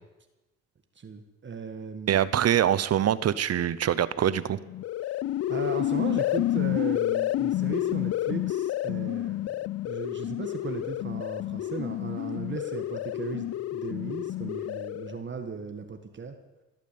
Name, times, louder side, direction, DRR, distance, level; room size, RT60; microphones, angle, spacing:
voice 1, 1.0-2.5 5.5-9.5 9.8-16.3, right 5 dB, 40° right, 6 dB, 1.6 m, -37 dB
voice 2, 2.1-4.6, right 10 dB, 55° right, 16 dB, 0.9 m, -24 dB
sound 1, 4.7-15.2, left 14 dB, 55° left, 0.4 m, -29 dB
18.0 x 9.2 x 8.6 m, 1.1 s
cardioid pair, 90°, 30 cm